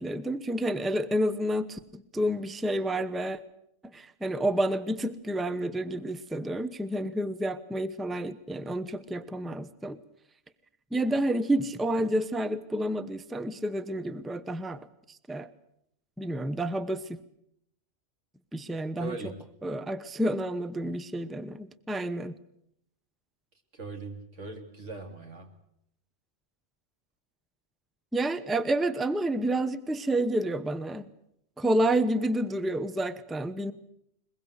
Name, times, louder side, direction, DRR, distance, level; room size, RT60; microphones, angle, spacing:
voice 1, 0.0-3.4 3.9-10.0 10.9-15.5 16.2-17.0 18.5-19.2 19.6-22.3 28.1-31.1 31.6-33.7, right 1 dB, ahead, 13 dB, 0.8 m, -29 dB
voice 2, 19.0-19.4 23.7-25.5, right 4 dB, 90° right, 4 dB, 3.2 m, -40 dB
22.0 x 22.0 x 8.1 m, 0.75 s
omnidirectional pair, 1.2 m